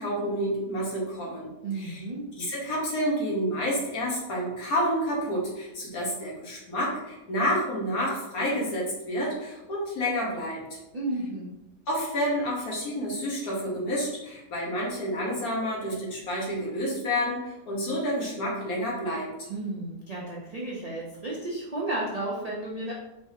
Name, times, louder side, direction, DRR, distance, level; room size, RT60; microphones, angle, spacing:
voice 1, 0.0-2.0 2.4-10.8 11.9-19.5, equal, 65° left, -4 dB, 1.6 m, -29 dB
voice 2, 1.6-2.3 10.9-11.5 19.5-22.9, right 2 dB, 70° right, -5 dB, 0.3 m, -33 dB
4.3 x 3.5 x 2.7 m, 0.93 s
omnidirectional pair, 1.7 m